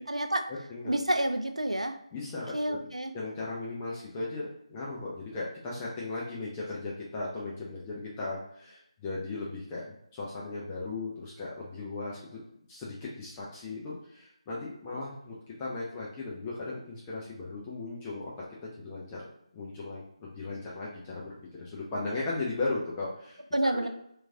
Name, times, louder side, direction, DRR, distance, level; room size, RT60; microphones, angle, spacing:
voice 1, 0.0-0.5 0.8-2.0 2.5-3.1 23.5-23.9, right 1 dB, 85° right, 6 dB, 0.4 m, -29 dB
voice 2, 2.1-2.8 3.1-12.4 12.7-18.3 18.6-19.3 19.5-21.3 21.6-23.4 23.7-23.9, left 3 dB, 15° left, -5 dB, 0.3 m, -37 dB
2.9 x 2.4 x 2.5 m, 0.74 s
figure-of-eight pair, 155°, 3 cm